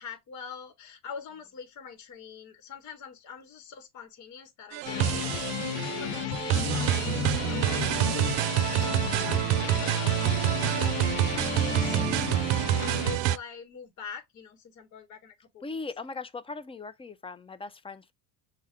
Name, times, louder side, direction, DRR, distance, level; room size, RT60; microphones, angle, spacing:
voice 1, 0.0-5.2 5.9-12.0 12.4-15.8, left 6 dB, 45° left, 1.1 m, -45 dB
sound 1, 4.7-13.4, right 13 dB, 75° right, 0.5 m, -27 dB
sound 2, 4.9-13.2, left 10 dB, 70° left, 0.8 m, -33 dB
voice 2, 15.6-18.1, left 4 dB, 15° left, 0.4 m, -39 dB
6.3 x 2.2 x 3.5 m
supercardioid pair, 100°, 41 cm